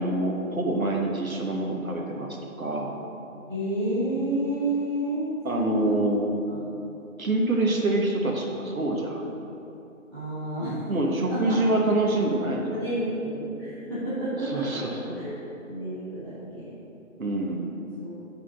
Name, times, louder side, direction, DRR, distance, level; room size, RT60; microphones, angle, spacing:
voice 1, 0.0-3.0 5.4-6.3 7.2-9.2 10.9-12.9 14.4-15.2 17.2-17.7, right 2 dB, 80° right, 0 dB, 1.4 m, -26 dB
voice 2, 3.5-6.0 6.4-6.8 10.1-10.9 11.3-11.6 12.8-15.4 15.6-16.7 18.0-18.1, right 1 dB, 20° right, -16 dB, 1.4 m, -30 dB
6.6 x 5.6 x 6.2 m, 2.8 s
figure-of-eight pair, 180°, 41 cm